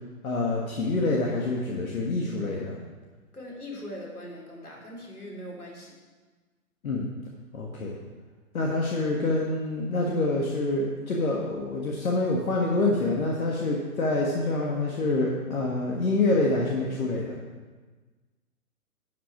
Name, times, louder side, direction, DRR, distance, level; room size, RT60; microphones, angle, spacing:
voice 1, 0.2-2.8 6.8-7.1 7.5-8.0 8.5-17.4, left 2 dB, 70° left, -2 dB, 1.6 m, -26 dB
voice 2, 3.3-6.0, left 1 dB, 90° left, -2 dB, 3.0 m, -41 dB
11.5 x 5.5 x 5.7 m, 1.3 s
figure-of-eight pair, 125°, 44 cm